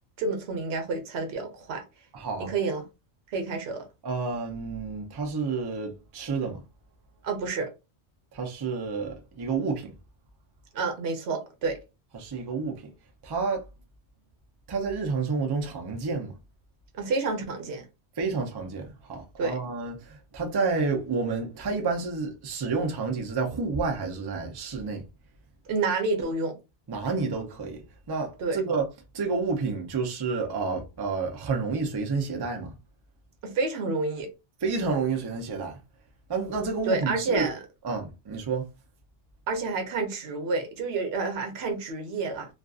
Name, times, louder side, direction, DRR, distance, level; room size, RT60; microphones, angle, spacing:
voice 1, 0.2-1.8 2.4-2.8 3.3-3.9 7.2-7.7 10.7-11.8 16.9-17.8 19.4-19.6 25.7-26.6 28.4-28.6 33.4-34.3 36.9-37.6 39.5-42.5, right 3 dB, 65° right, 0.9 m, -29 dB
voice 2, 2.1-2.5 4.0-6.6 8.3-9.9 12.1-12.9 13.2-13.6 14.7-16.3 18.2-25.0 26.9-28.9 29.1-32.7 34.6-35.8 36.3-37.5 37.8-38.7, right 4 dB, 40° right, 0.3 m, -30 dB
2.4 x 2.4 x 2.3 m
omnidirectional pair, 1.2 m